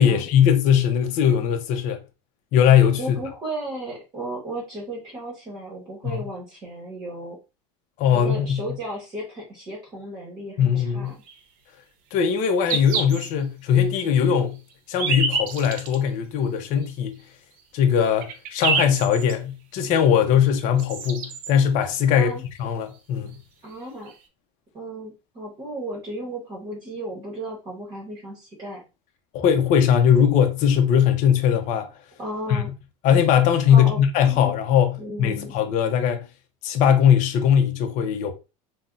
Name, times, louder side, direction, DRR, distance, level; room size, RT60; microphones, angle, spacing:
voice 1, 0.0-2.0 2.5-3.2 6.0-6.3 8.0-8.6 10.6-11.1 12.1-14.6 14.9-17.2 17.7-22.3 22.6-23.3 29.3-31.9 32.5-32.6 33.0-36.3 36.6-38.3, left 8 dB, 45° left, 0.6 m, -20 dB
voice 2, 2.9-7.4 8.1-11.2 22.1-22.4 23.6-24.1 24.7-28.8 32.2-32.7 33.7-34.0 34.3-34.5 35.0-35.5, right 1 dB, 25° right, 1.0 m, -34 dB
sound 1, 11.2-11.4 12.2-12.3 12.7-13.3 13.8-13.9 14.7-16.0 16.8-16.9 17.6-17.7 18.0-19.3 20.5-20.6 20.8-21.5 23.0-23.1 23.3-23.4 24.1-24.2, right 4 dB, 55° right, 0.7 m, -27 dB
2.6 x 2.0 x 3.6 m
supercardioid pair, 145°, 17 cm